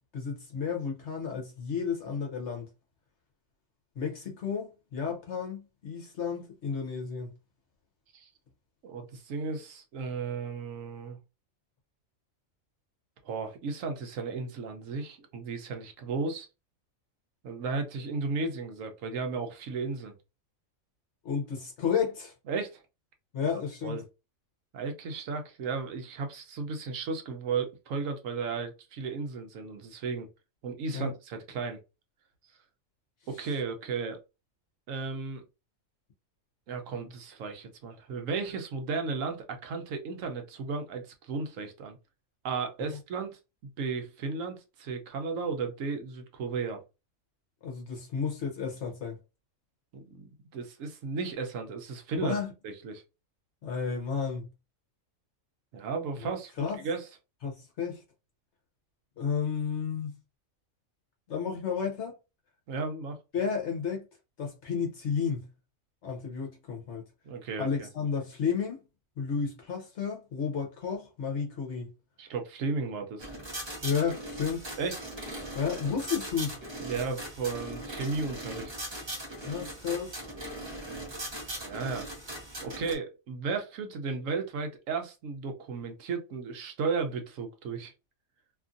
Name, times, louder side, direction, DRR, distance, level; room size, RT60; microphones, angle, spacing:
voice 1, 0.1-2.7 4.0-7.3 21.2-22.3 23.3-24.0 30.9-31.1 47.6-49.2 52.2-52.5 53.6-54.5 56.6-56.8 57.4-58.0 59.2-60.1 61.3-62.1 63.3-64.0 64.4-65.5 66.0-67.1 67.6-68.8 69.2-71.9 73.8-74.7 75.5-76.6 79.3-80.1, left 6 dB, 60° left, 1.0 m, -32 dB
voice 2, 8.8-11.2 13.2-16.5 17.4-20.1 22.5-22.8 23.4-23.5 23.8-24.0 24.7-30.3 30.6-31.8 33.3-34.2 34.9-35.4 36.7-42.0 42.4-43.4 43.8-46.8 49.9-52.4 52.6-53.0 55.7-57.1 62.7-63.2 67.2-67.9 72.2-73.3 74.8-75.0 76.8-78.7 81.5-82.0 82.6-87.9, right 4 dB, 75° right, 1.0 m, -34 dB
sound 1, 73.2-83.0, right 1 dB, 30° right, 0.6 m, -39 dB
2.9 x 2.5 x 2.5 m
omnidirectional pair, 1.4 m